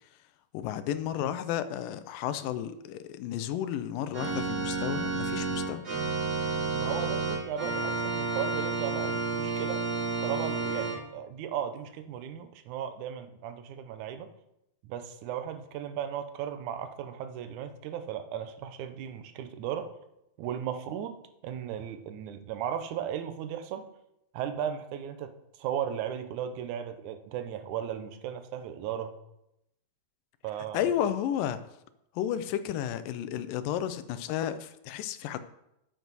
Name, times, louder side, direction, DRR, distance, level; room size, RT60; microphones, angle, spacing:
voice 1, 0.5-5.8 30.7-31.6 32.2-35.4, left 10 dB, 80° left, 12 dB, 2.2 m, -32 dB
Organ, 4.1-11.0, right 4 dB, 50° right, 1.2 m, -31 dB
voice 2, 6.7-9.8 10.2-14.3 14.8-19.9 20.4-21.2 21.4-23.9 24.3-25.3 25.6-29.1 30.4-30.9, right 9 dB, 75° right, 9 dB, 1.9 m, -36 dB
9.1 x 9.1 x 4.1 m, 0.83 s
omnidirectional pair, 4.1 m